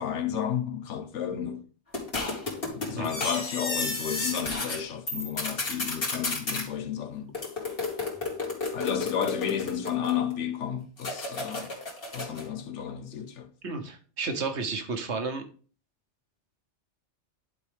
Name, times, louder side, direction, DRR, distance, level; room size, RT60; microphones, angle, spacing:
voice 1, 0.0-1.6 2.7-7.3 8.7-11.7 12.1-13.5, left 8 dB, 80° left, 1.1 m, -32 dB
sound 1, 1.9-4.8 5.1-6.7 7.3-10.3 11.0-12.5, left 3 dB, 55° left, 2.0 m, -32 dB
voice 2, 13.6-15.4, right 4 dB, 70° right, 1.3 m, -32 dB
10.5 x 4.4 x 3.5 m
omnidirectional pair, 1.2 m